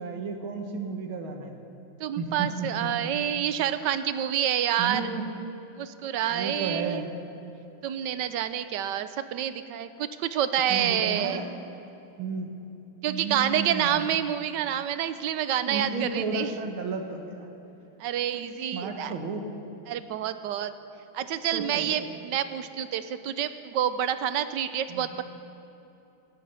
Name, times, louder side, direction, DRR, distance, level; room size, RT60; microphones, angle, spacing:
voice 1, 0.0-1.6 2.2-3.1 4.8-5.3 6.3-7.1 10.7-11.5 12.2-12.5 13.1-14.1 15.7-17.5 18.7-19.4 21.5-22.1 24.9-25.2, right 4 dB, 85° right, 4 dB, 2.3 m, -33 dB
voice 2, 2.0-5.1 5.8-7.1 7.8-11.4 13.0-16.5 18.0-19.1 19.9-20.7 21.1-25.2, right 10 dB, 70° right, 12 dB, 1.2 m, -28 dB
16.5 x 13.5 x 5.7 m, 2.9 s
omnidirectional pair, 2.2 m